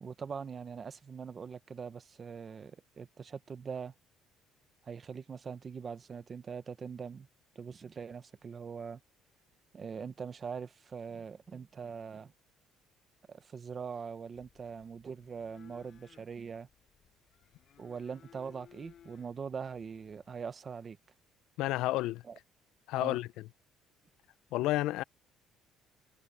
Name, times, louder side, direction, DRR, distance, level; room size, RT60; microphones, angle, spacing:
voice 1, 0.0-3.9 4.8-7.3 7.6-9.0 9.7-12.3 13.3-16.7 17.8-21.0 22.2-22.4 23.0-23.2, right 6 dB, 25° right, 0.8 m, -42 dB
sound 1, 14.3-20.3, left 9 dB, 40° left, 5.9 m, -61 dB
voice 2, 21.6-22.2 22.9-23.3 24.5-25.0, left 17 dB, 70° left, 0.4 m, -30 dB
cardioid pair, 180°, 0 cm